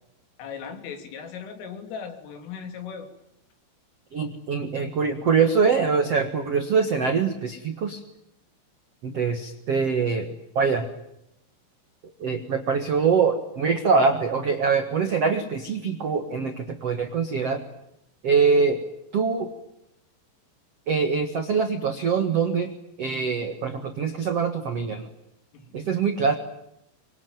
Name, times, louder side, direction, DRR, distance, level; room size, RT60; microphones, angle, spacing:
voice 1, 0.4-3.1 25.5-26.0, left 6 dB, 85° left, 6 dB, 5.7 m, -38 dB
voice 2, 4.1-8.0 9.0-10.9 12.2-17.6 18.2-18.8 19.1-19.5 20.9-22.7 23.0-25.1 25.7-26.3, right 5 dB, 70° right, 7 dB, 1.5 m, -24 dB
26.0 x 24.5 x 9.2 m, 0.84 s
omnidirectional pair, 5.6 m